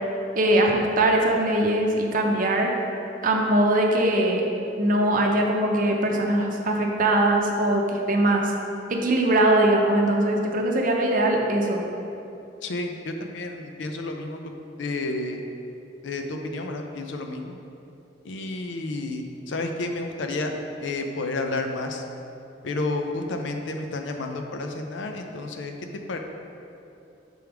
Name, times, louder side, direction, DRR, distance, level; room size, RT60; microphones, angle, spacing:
voice 1, 0.3-2.7 3.2-4.4 4.8-8.5 8.9-11.8, right 1 dB, 45° right, 1 dB, 0.6 m, -21 dB
voice 2, 12.6-15.4 16.0-17.6 18.2-20.5 20.8-22.0 22.6-25.7 26.1-26.2, left 2 dB, 75° left, 4 dB, 0.5 m, -31 dB
6.1 x 4.6 x 3.5 m, 2.7 s
head